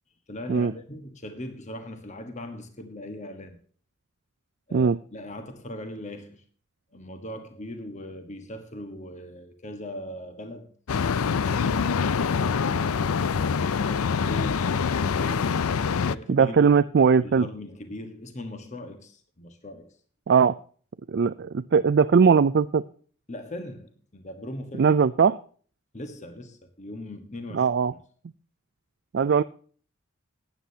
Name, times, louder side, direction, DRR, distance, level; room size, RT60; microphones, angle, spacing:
voice 1, 0.3-3.6 4.7-6.4 6.9-10.7 11.3-15.6 16.0-16.7 17.2-20.0 23.3-24.9 25.9-28.0, left 1 dB, 35° left, 1.3 m, -40 dB
sound 1, 10.9-16.2, left 6 dB, 85° left, 0.5 m, -25 dB
voice 2, 16.3-17.5 20.3-20.6 21.1-22.8 24.8-25.4 27.5-27.9 29.1-29.4, right 6 dB, 50° right, 0.4 m, -20 dB
16.0 x 9.6 x 2.8 m
head